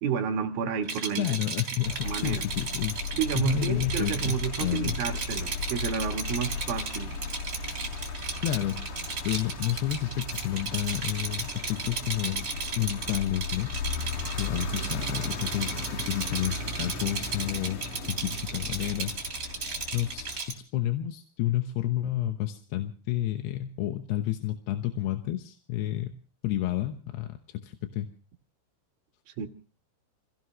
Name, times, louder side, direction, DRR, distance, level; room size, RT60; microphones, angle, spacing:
voice 1, 0.0-1.3 2.0-2.4 3.1-7.2 29.4-29.5, right 8 dB, 65° right, 2.7 m, -31 dB
Rattle, 0.8-20.5, right 4 dB, 25° right, 2.9 m, -35 dB
voice 2, 1.2-3.1 3.4-4.9 8.4-12.5 12.8-14.0 14.4-17.8 18.1-19.1 19.9-26.1 26.4-28.1, left 13 dB, 70° left, 2.8 m, -30 dB
sound 1, 1.8-20.4, left 4 dB, 50° left, 3.0 m, -36 dB
28.0 x 16.5 x 3.1 m
omnidirectional pair, 5.6 m